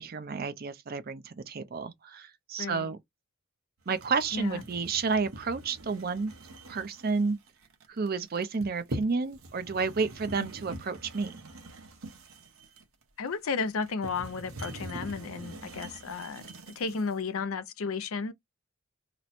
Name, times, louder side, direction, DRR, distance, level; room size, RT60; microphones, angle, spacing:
voice 1, 0.0-3.0 3.9-6.3 6.7-7.4 7.9-11.5, right 4 dB, 45° right, 0.5 m, -31 dB
voice 2, 2.6-2.9 4.3-4.6 13.2-18.3, left 5 dB, 75° left, 0.5 m, -33 dB
sound 1, 3.9-17.2, right 1 dB, 70° right, 0.9 m, -44 dB
3.0 x 2.0 x 4.1 m
head